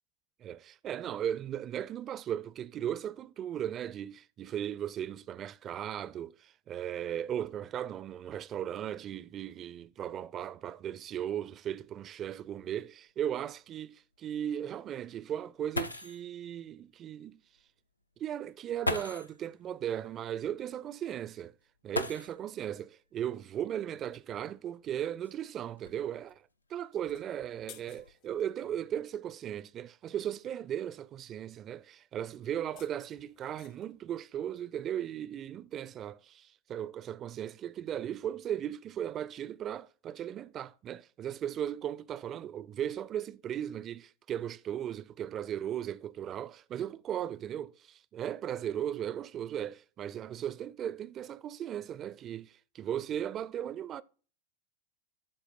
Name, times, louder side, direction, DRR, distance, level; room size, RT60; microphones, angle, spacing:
voice 1, 0.4-17.4 18.2-21.5 21.8-26.4 26.7-54.0, right 10 dB, 30° right, 0.4 m, -37 dB
sound 1, 11.8-11.9 12.3-12.4 13.1-13.2 15.4-15.5 15.7-16.3 17.6-17.7 18.8-19.4 21.9-22.6 24.0-24.1 24.8-26.3 27.0-27.4 27.7-28.1, left 2 dB, 85° left, 0.6 m, -37 dB
sound 2, 27.0-28.5 32.5-34.0, left 11 dB, 40° left, 0.8 m, -56 dB
12.0 x 4.4 x 4.2 m
figure-of-eight pair, 90°, 0 cm